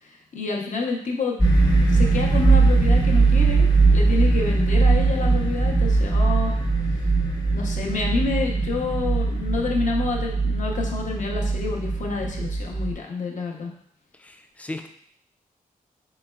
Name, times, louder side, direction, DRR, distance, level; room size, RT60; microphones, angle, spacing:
voice 1, 0.0-1.4 1.9-3.7 3.9-6.5 7.5-13.7, left 4 dB, 55° left, 0 dB, 0.7 m, -28 dB
sound 1, 1.4-12.9, right 3 dB, 30° left, 1.0 m, -20 dB
voice 2, 14.2-14.9, left 2 dB, 10° left, 6 dB, 0.3 m, -36 dB
3.9 x 3.1 x 2.2 m, 0.64 s
wide cardioid pair, 105°, 15 cm